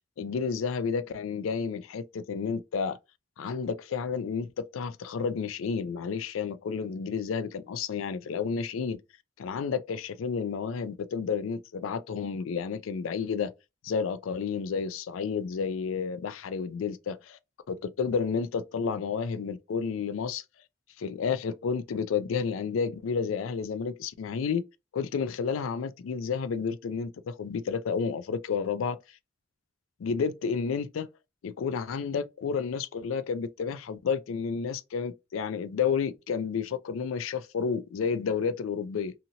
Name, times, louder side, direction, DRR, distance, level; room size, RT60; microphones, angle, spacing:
voice 1, 0.2-3.0 3.4-9.0 9.4-13.5 13.8-17.4 17.7-20.4 21.0-24.6 24.9-29.0 30.0-31.1 31.4-39.1, left 6 dB, 85° left, 0.4 m, -31 dB
2.8 x 2.8 x 2.6 m
head